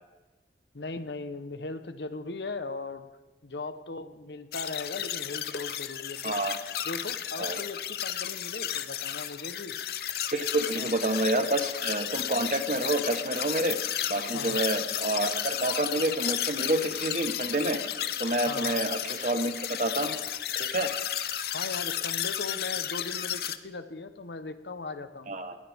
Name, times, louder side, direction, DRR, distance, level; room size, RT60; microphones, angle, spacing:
voice 1, 0.7-3.1 3.4-6.4 6.8-9.8 10.8-10.9 14.3-14.6 18.5-18.8 21.4-25.3, left 3 dB, 75° left, 10 dB, 1.0 m, -38 dB
sound 1, 4.5-23.6, left 10 dB, 60° left, 0.6 m, -33 dB
voice 2, 6.2-6.5 7.4-7.6 10.3-13.8 14.1-17.8 18.2-20.2 20.5-20.9 25.3-25.6, right 2 dB, 45° right, 7 dB, 1.2 m, -28 dB
20.5 x 18.0 x 3.6 m, 1.2 s
head